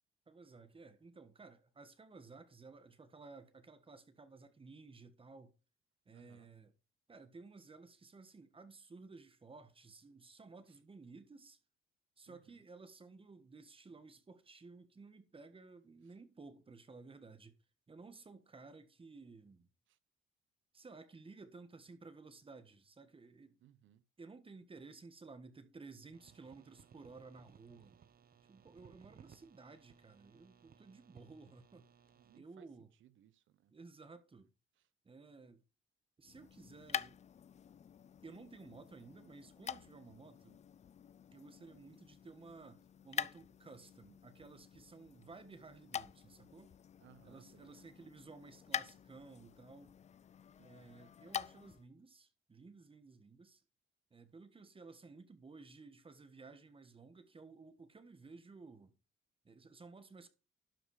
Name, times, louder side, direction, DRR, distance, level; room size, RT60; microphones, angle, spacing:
voice 1, 0.3-5.5 6.1-6.7 7.1-11.6 12.2-17.5 17.9-19.7 20.7-23.6 24.2-28.0 28.5-31.9 32.3-32.9 33.7-34.5 35.0-35.6 36.2-37.2 38.2-40.6 41.3-46.7 47.2-50.0 50.6-53.6 54.1-58.9 59.4-60.3, right 4 dB, 25° right, 1.5 m, -55 dB
voice 2, 6.1-6.5 12.3-12.6 19.9-20.0 23.6-24.0 32.2-33.7 47.0-47.9 50.6-50.9, right 11 dB, 75° right, 0.8 m, -65 dB
sound 1, 26.1-32.4, right 7 dB, 50° right, 0.9 m, -63 dB
sound 2, 36.2-51.9, left 8 dB, 35° left, 0.4 m, -47 dB
12.0 x 5.0 x 4.8 m
cardioid pair, 90°, 20 cm